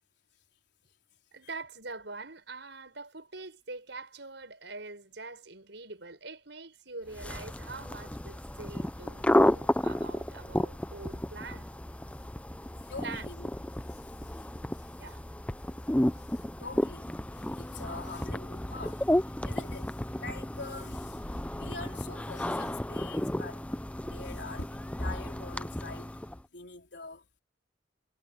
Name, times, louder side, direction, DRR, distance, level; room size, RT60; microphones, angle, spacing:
voice 1, 1.3-11.7 13.0-13.3 15.0-15.2 24.1-24.2, right 3 dB, 70° right, 5.7 m, -44 dB
sound 1, 7.1-26.4, left 1 dB, 5° left, 0.5 m, -32 dB
voice 2, 12.9-13.5 16.3-19.0 19.4-21.2 21.5-23.6 24.1-26.2 26.5-27.3, left 3 dB, 65° left, 4.2 m, -44 dB
head